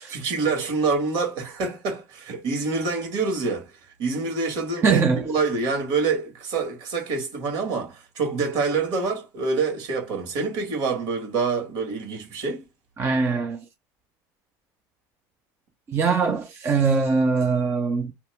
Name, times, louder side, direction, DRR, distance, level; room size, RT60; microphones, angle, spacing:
voice 1, 0.1-3.7 4.0-12.6, right 4 dB, 65° right, 1.8 m, -26 dB
voice 2, 4.8-5.3 13.0-13.6 15.9-18.1, right 4 dB, 30° right, 0.6 m, -22 dB
2.9 x 2.2 x 3.4 m
supercardioid pair, 115°, 9 cm